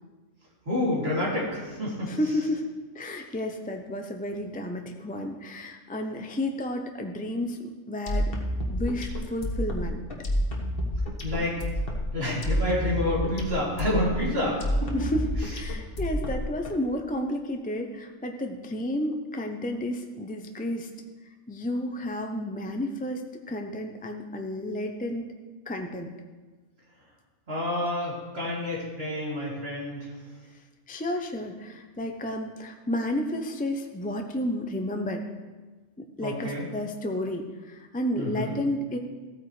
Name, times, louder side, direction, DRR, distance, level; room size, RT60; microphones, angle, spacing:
voice 1, 0.6-2.1 11.2-11.6 12.1-14.9 27.5-30.1 36.2-36.7 38.2-38.5, left 1 dB, 55° right, -6 dB, 3.3 m, -28 dB
voice 2, 2.1-8.3 8.7-10.0 14.9-20.9 21.5-23.2 23.5-25.3 25.7-26.1 30.9-35.3 36.0-39.0, left 1 dB, 15° left, 4 dB, 0.3 m, -31 dB
sound 1, 8.1-16.7, equal, 50° left, 1.6 m, -29 dB
15.0 x 8.9 x 3.2 m, 1.3 s
omnidirectional pair, 1.3 m